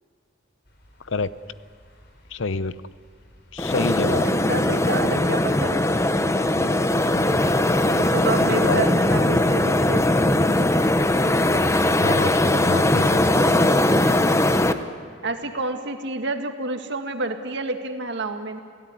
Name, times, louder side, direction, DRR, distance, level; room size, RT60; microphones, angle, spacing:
sound 1, 0.7-14.5, left 1 dB, 60° left, 3.9 m, -46 dB
voice 1, 2.3-2.8 3.5-4.3 7.0-7.3 8.7-8.8 9.1-9.2 12.0-13.2, left 4 dB, 80° left, 15 dB, 0.7 m, -28 dB
sound 2, 3.6-14.7, left 1 dB, 15° left, 0.9 m, -20 dB
voice 2, 4.2-5.9 8.0-10.1 15.2-18.6, right 2 dB, 65° right, 6 dB, 2.0 m, -29 dB
30.0 x 16.5 x 9.8 m, 2.1 s
head